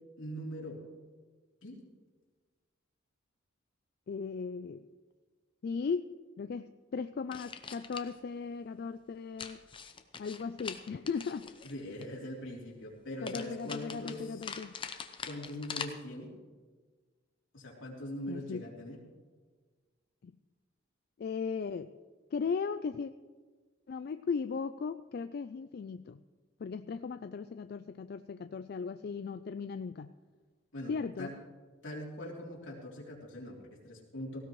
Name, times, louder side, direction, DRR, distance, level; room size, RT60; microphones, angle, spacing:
voice 1, 0.2-0.8 1.6-1.8 11.6-14.5 15.2-16.3 17.5-19.0 30.7-31.3 31.8-34.4, equal, 75° left, -3 dB, 3.4 m, -42 dB
voice 2, 4.1-4.9 5.6-6.1 6.4-9.6 10.2-11.6 13.2-14.7 18.3-18.7 20.2-20.3 21.2-21.9 22.3-23.1 23.9-26.2 26.6-30.1 30.9-31.3, left 5 dB, 50° left, 10 dB, 0.3 m, -37 dB
sound 1, 7.3-8.2 9.4-12.1 13.3-15.9, left 6 dB, 25° left, 0.7 m, -43 dB
17.5 x 16.0 x 3.1 m, 1.4 s
head